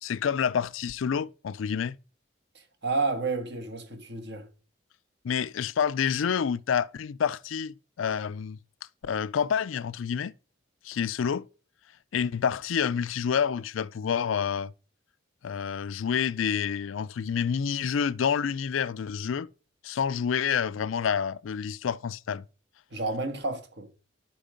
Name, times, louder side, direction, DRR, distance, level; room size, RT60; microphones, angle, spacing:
voice 1, 0.0-2.0 5.2-8.6 9.0-10.3 10.8-11.5 12.1-14.7 15.4-19.5 19.8-22.4, left 7 dB, 80° left, 0.4 m, -28 dB
voice 2, 2.5-4.5 22.9-23.9, right 3 dB, 60° right, 1.6 m, -31 dB
11.5 x 4.6 x 5.1 m
head